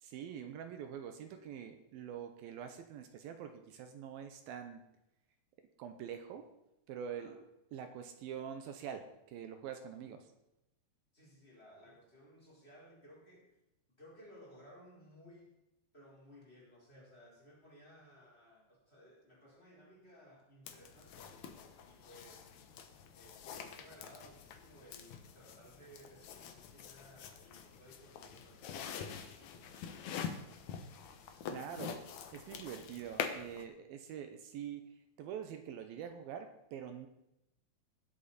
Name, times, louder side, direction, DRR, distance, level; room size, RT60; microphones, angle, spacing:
voice 1, 0.0-4.8 5.8-6.5 6.9-7.4 7.7-10.3 31.5-32.0 32.3-34.9 35.2-37.1, right 8 dB, 75° right, 7 dB, 2.4 m, -45 dB
voice 2, 11.1-13.5 14.0-15.6 15.9-21.3 21.8-22.6 23.1-30.6, equal, 15° left, -4 dB, 4.2 m, -59 dB
sound 1, 20.7-33.6, left 7 dB, 85° left, 1.6 m, -46 dB
21.0 x 8.1 x 4.2 m, 0.88 s
omnidirectional pair, 4.8 m